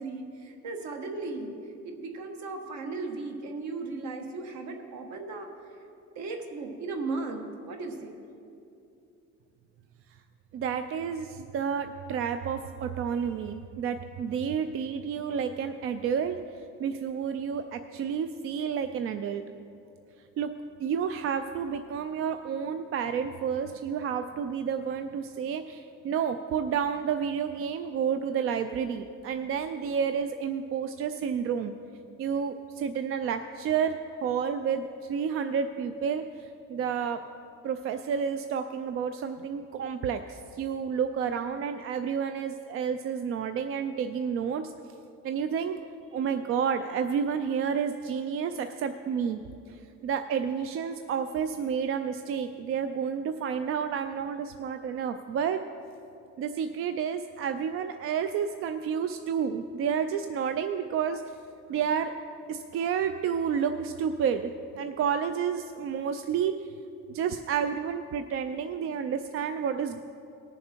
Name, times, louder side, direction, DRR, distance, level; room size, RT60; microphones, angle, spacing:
voice 1, 0.0-1.6 1.8-5.5 6.1-8.2, right 3 dB, 65° right, 3 dB, 1.5 m, -36 dB
voice 2, 10.5-16.4 16.8-19.4 20.4-20.5 20.8-31.7 32.2-37.2 37.6-44.7 45.2-45.8 46.1-49.4 49.7-55.6 56.4-61.2 61.7-62.1 62.5-66.5 67.1-70.0, right 7 dB, 45° right, 9 dB, 0.4 m, -30 dB
19.0 x 7.1 x 4.4 m, 2.7 s
cardioid pair, 160°, 31 cm